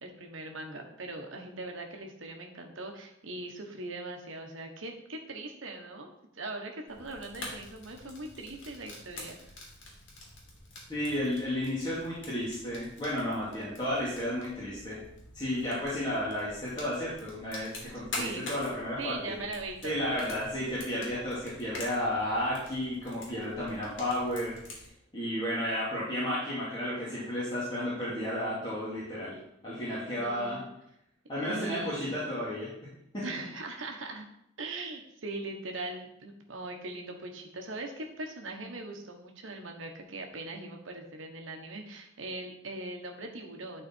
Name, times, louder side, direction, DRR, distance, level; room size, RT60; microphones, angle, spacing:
voice 1, 0.0-9.5 18.2-18.5 19.0-20.1 29.9-30.7 31.4-32.2 33.2-34.3 34.6-43.9, right 2 dB, 85° right, 3 dB, 1.4 m, -40 dB
Fire, 6.9-24.9, left 2 dB, 70° left, 2.6 m, -46 dB
voice 2, 10.9-15.0 15.3-19.3 19.8-24.6 25.1-29.4 29.6-30.6 31.3-32.7 33.1-33.3, left 1 dB, 25° left, -10 dB, 2.4 m, -32 dB
11.0 x 4.3 x 4.5 m, 0.78 s
head